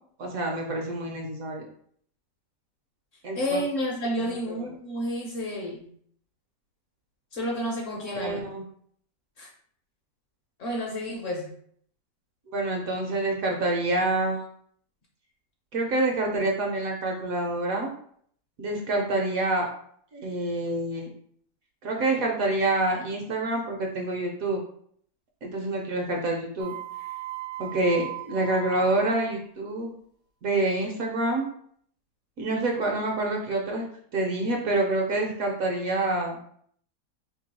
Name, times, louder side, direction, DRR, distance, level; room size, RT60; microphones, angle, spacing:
voice 1, 0.2-1.6 3.2-3.6 4.2-4.6 8.0-8.6 12.5-14.4 15.7-17.9 18.6-19.7 20.1-21.1 21.8-24.6 25.4-26.7 27.6-29.9 30.4-31.4 32.4-33.8 34.1-36.4, right 2 dB, 65° right, 1 dB, 1.0 m, -27 dB
voice 2, 3.3-5.9 7.3-8.5 9.4-9.5 10.6-11.5, equal, 60° left, -1 dB, 0.9 m, -30 dB
sound 1, 26.6-29.2, right 8 dB, 80° right, 1.2 m, -38 dB
3.0 x 2.7 x 4.0 m, 0.62 s
omnidirectional pair, 1.8 m